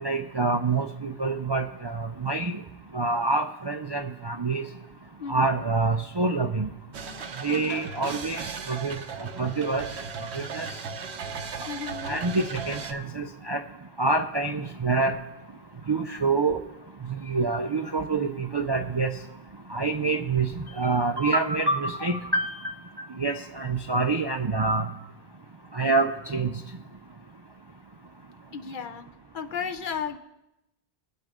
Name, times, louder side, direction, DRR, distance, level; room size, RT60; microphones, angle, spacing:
voice 1, 0.0-2.6 2.9-4.6 5.3-6.7 7.4-9.9 10.3-10.7 12.1-13.6 14.0-15.2 15.9-16.6 17.2-19.1 19.7-20.5 20.8-22.6 23.2-24.9 25.7-26.5, right 3 dB, 40° right, 6 dB, 0.3 m, -26 dB
voice 2, 5.2-5.6 11.7-12.2 28.5-29.1 29.3-30.2, left 6 dB, 55° left, 7 dB, 0.7 m, -34 dB
sound 1, 6.9-12.9, right 5 dB, 85° right, 1.1 m, -37 dB
21.5 x 8.0 x 3.6 m, 0.91 s
omnidirectional pair, 1.1 m